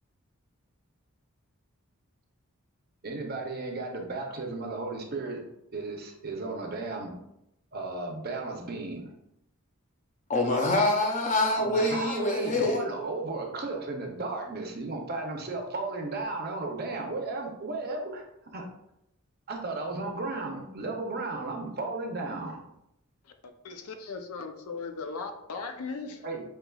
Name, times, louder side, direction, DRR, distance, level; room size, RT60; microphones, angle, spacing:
voice 1, 3.0-5.4 5.7-7.1 7.7-9.1 11.6-18.2 18.5-18.6 19.5-22.6 26.2-26.5, right 3 dB, 45° right, 0.6 m, -34 dB
voice 2, 10.3-12.9, left 2 dB, 35° left, 0.6 m, -25 dB
voice 3, 23.6-26.2, left 4 dB, 85° left, 0.5 m, -37 dB
5.6 x 2.9 x 2.3 m
head